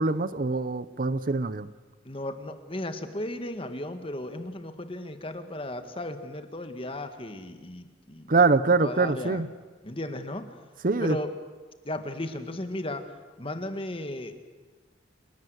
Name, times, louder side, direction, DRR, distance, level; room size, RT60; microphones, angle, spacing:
voice 1, 0.0-1.7 8.3-9.5 10.8-11.2, right 3 dB, 45° right, 15 dB, 0.7 m, -24 dB
voice 2, 2.1-8.3 8.8-9.4 9.8-10.6 11.0-11.3 11.8-13.0 13.4-14.3, left 1 dB, 30° left, 8 dB, 1.8 m, -35 dB
28.5 x 17.5 x 8.1 m, 1.3 s
head